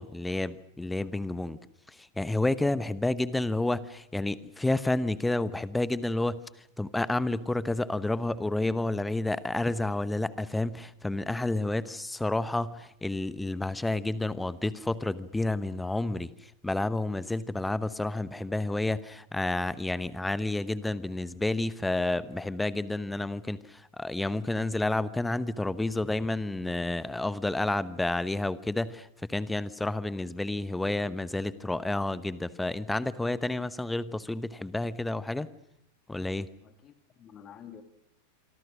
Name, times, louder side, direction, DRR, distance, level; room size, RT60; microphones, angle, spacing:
voice 1, 0.0-1.6 1.9-6.4 6.8-35.5 36.1-36.5, left 2 dB, 5° left, 17 dB, 1.0 m, -30 dB
voice 2, 36.6-37.8, left 8 dB, 30° left, 10 dB, 2.0 m, -49 dB
26.0 x 25.5 x 6.3 m, 0.76 s
figure-of-eight pair, 90°, 0 cm